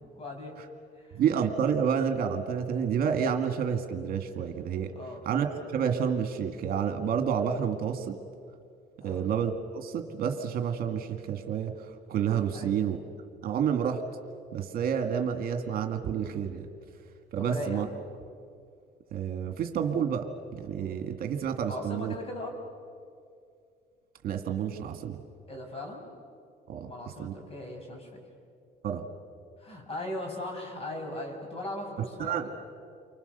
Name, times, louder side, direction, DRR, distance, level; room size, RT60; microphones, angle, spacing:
voice 1, 0.1-0.6 1.0-1.2 4.9-5.2 9.0-9.3 12.5-12.8 17.4-17.9 21.7-22.6 25.5-26.0 26.8-28.2 29.6-32.5, left 1 dB, 35° left, 3 dB, 5.8 m, -38 dB
voice 2, 1.1-4.9 5.3-8.2 9.0-13.0 13.4-14.0 14.5-16.6 17.3-17.9 19.1-20.3 20.5-22.1 24.2-25.2 26.7-26.9 27.2-27.3 28.8-29.1 32.2-32.5, right 7 dB, 60° right, 6 dB, 2.0 m, -29 dB
30.0 x 24.5 x 6.8 m, 2.3 s
cardioid pair, 110°, 17 cm